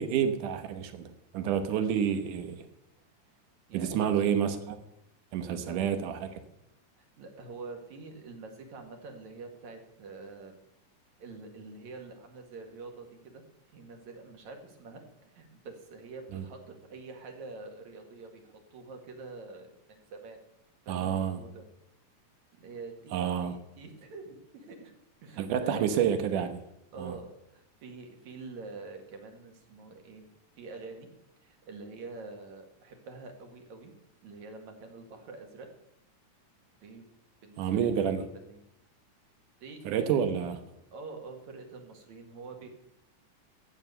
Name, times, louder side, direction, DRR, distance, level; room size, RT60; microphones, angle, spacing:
voice 1, 0.0-2.6 3.7-4.8 5.3-6.4 16.3-16.4 20.9-21.4 23.1-23.6 25.4-26.6 27.0-27.2 37.6-38.2 39.8-40.6, right 8 dB, 85° right, 2.7 m, -29 dB
voice 2, 3.7-4.2 5.5-5.9 7.0-10.6 11.2-13.4 13.7-20.4 20.9-21.6 22.6-25.9 26.9-30.3 30.6-31.1 31.4-33.9 34.2-35.7 36.8-37.0 37.4-37.9 38.3-38.6 39.6-40.2 40.9-42.7, right 3 dB, 65° right, 3.4 m, -46 dB
14.0 x 9.3 x 6.9 m
omnidirectional pair, 3.5 m